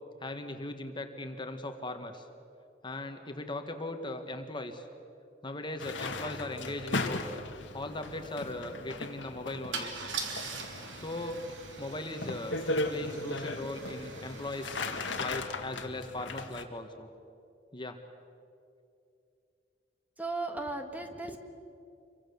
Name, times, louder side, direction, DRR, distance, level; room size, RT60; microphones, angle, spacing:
voice 1, 0.2-2.2 2.8-4.9 5.4-7.2 7.7-9.9 10.9-12.6 12.9-17.1 17.7-18.0, left 2 dB, 25° left, 6 dB, 1.5 m, -39 dB
sound 1, 5.8-16.6, left 2 dB, 85° left, 2.0 m, -37 dB
Car / Engine starting / Idling, 7.1-7.2 7.5-7.7 9.7-15.4, right 4 dB, 85° right, 3.3 m, -42 dB
voice 2, 20.2-21.4, right 2 dB, 10° right, 5 dB, 1.6 m, -36 dB
28.0 x 24.0 x 7.1 m, 2.6 s
head